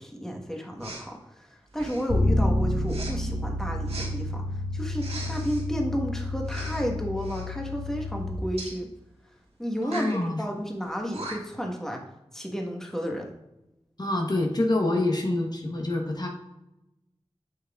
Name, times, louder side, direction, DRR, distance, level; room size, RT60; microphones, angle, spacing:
voice 1, 0.0-8.9 9.6-12.0 12.3-13.3, equal, 5° left, 1 dB, 1.3 m, -32 dB
Respiratory sounds, 0.8-1.1 1.7-2.1 2.9-3.1 3.9-4.1 5.0-5.6 6.4-6.8 7.2-7.5 8.6-8.8 9.8-10.2 10.8-10.9 11.1-11.6, right 2 dB, 90° right, 1.5 m, -39 dB
Bass guitar, 2.1-8.3, left 1 dB, 70° left, 1.9 m, -29 dB
voice 2, 9.8-10.4 14.0-16.3, left 2 dB, 45° left, 0 dB, 1.1 m, -26 dB
8.2 x 5.8 x 2.4 m, 0.92 s
cardioid pair, 40°, 10 cm